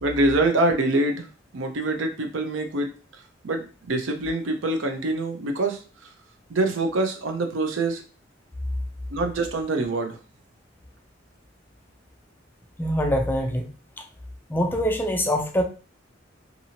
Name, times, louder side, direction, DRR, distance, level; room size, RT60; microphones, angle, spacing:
voice 1, 0.0-1.3 1.5-2.9 3.4-5.8 6.5-8.0 9.1-10.2, right 2 dB, 85° right, 5 dB, 0.6 m, -25 dB
voice 2, 12.8-13.7 14.5-15.6, equal, 10° left, 3 dB, 0.4 m, -24 dB
2.8 x 2.6 x 2.8 m, 0.36 s
head